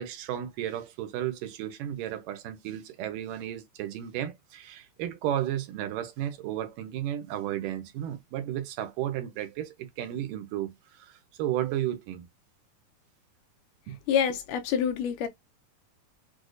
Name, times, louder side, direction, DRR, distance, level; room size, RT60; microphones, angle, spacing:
voice 1, 0.0-12.3 13.9-14.0, right 11 dB, 80° right, 2.2 m, -33 dB
voice 2, 14.1-15.3, left 8 dB, 80° left, 2.1 m, -26 dB
6.3 x 2.2 x 2.5 m
omnidirectional pair, 4.0 m